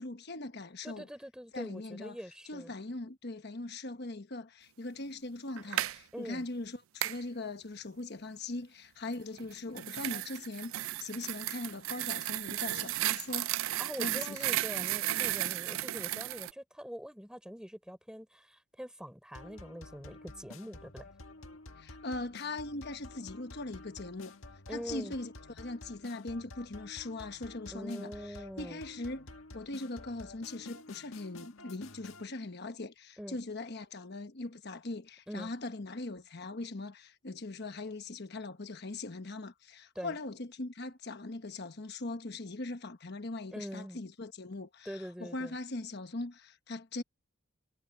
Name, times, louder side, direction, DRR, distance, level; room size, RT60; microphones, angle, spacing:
voice 1, 0.0-1.1 1.5-2.2 2.5-13.5 14.0-14.8 21.8-24.3 24.7-47.0, left 2 dB, 50° left, 1.1 m, -41 dB
voice 2, 0.8-2.7 6.1-6.5 13.8-21.1 24.7-25.2 27.7-28.8 33.2-33.4 35.3-35.5 39.9-40.1 43.5-44.0 44.8-45.6, equal, 5° right, 4.5 m, -44 dB
sound 1, 5.6-6.0 7.0-7.2 9.4-16.5, right 14 dB, 75° right, 0.4 m, -34 dB
sound 2, 19.3-32.3, left 2 dB, 75° left, 1.6 m, -50 dB
head